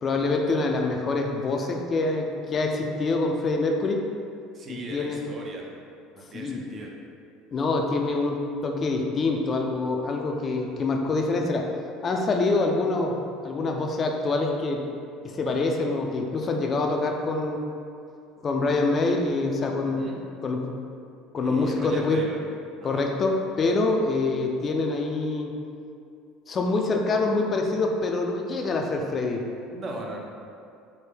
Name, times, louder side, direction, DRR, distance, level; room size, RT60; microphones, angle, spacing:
voice 1, 0.0-4.0 4.7-5.2 6.3-6.6 7.5-11.7 12.0-13.2 13.4-14.8 15.2-17.6 18.4-20.1 20.4-20.7 21.3-22.2 22.8-25.6 26.5-29.4, left 3 dB, 40° left, 2 dB, 0.3 m, -25 dB
voice 2, 4.5-5.7 6.1-6.9 19.8-20.2 21.4-22.4 22.8-23.1 29.7-30.2, right 2 dB, 40° right, 0 dB, 0.5 m, -38 dB
3.3 x 2.1 x 3.4 m, 2.4 s
hypercardioid pair, 75°, 0 cm